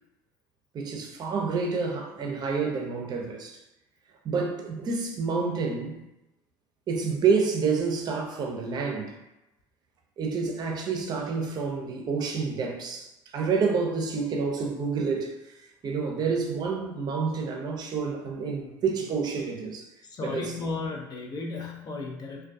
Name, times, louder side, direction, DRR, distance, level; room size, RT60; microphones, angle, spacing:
voice 1, 0.7-3.6 4.2-6.0 6.9-9.2 10.2-15.4 15.8-19.9 20.2-20.6, right 5 dB, 40° right, 0.5 m, -28 dB
voice 2, 20.0-22.5, left 3 dB, 40° left, 0.4 m, -34 dB
2.2 x 2.2 x 2.5 m
supercardioid pair, 95°, 11 cm